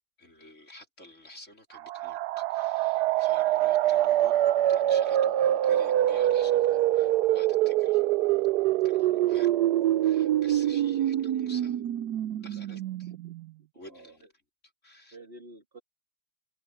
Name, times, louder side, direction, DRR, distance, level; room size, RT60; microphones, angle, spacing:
voice 1, 0.2-4.3 4.7-8.0 8.8-9.6 10.0-11.8 12.4-13.1 13.7-14.3 14.8-15.2, left 1 dB, 45° left, 4.7 m, -51 dB
sound 1, 1.8-13.4, right 13 dB, 75° right, 1.2 m, -25 dB
voice 2, 13.8-14.2 15.1-15.8, right 2 dB, 35° right, 2.5 m, -49 dB
omnidirectional pair, 1.8 m